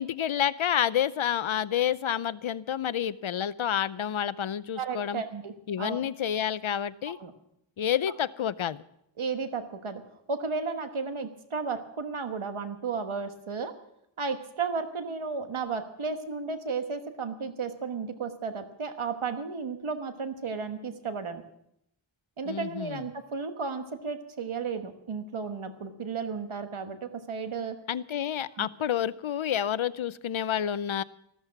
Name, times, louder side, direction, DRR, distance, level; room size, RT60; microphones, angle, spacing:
voice 1, 0.0-5.2 5.7-7.2 7.8-8.8 22.4-23.0 27.9-31.0, left 9 dB, 75° left, 17 dB, 0.7 m, -29 dB
voice 2, 4.8-6.0 7.0-7.3 9.2-10.0 10.3-13.7 14.2-21.4 22.4-27.8 28.5-28.7, right 5 dB, 80° right, 7 dB, 1.4 m, -33 dB
14.0 x 13.5 x 5.9 m, 0.76 s
wide cardioid pair, 65°, 48 cm